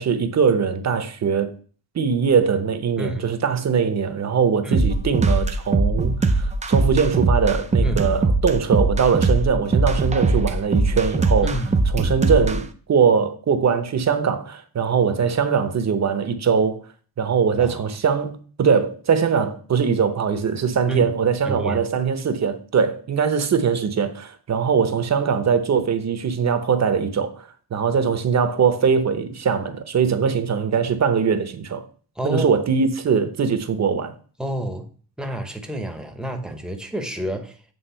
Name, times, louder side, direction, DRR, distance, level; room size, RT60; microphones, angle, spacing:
voice 1, 0.0-1.5 1.9-11.6 11.9-16.8 17.2-31.9 32.2-34.1, right 6 dB, 40° right, 0.9 m, -21 dB
voice 2, 3.0-3.3 4.6-4.9 7.8-8.0 11.4-11.8 17.6-17.9 20.9-21.2 21.5-21.9 32.2-32.6 34.4-34.9 35.2-37.6, right 1 dB, ahead, 0.9 m, -29 dB
sound 1, 4.7-12.6, right 3 dB, 15° right, 0.5 m, -20 dB
8.1 x 3.6 x 5.6 m
cardioid pair, 140°, 41 cm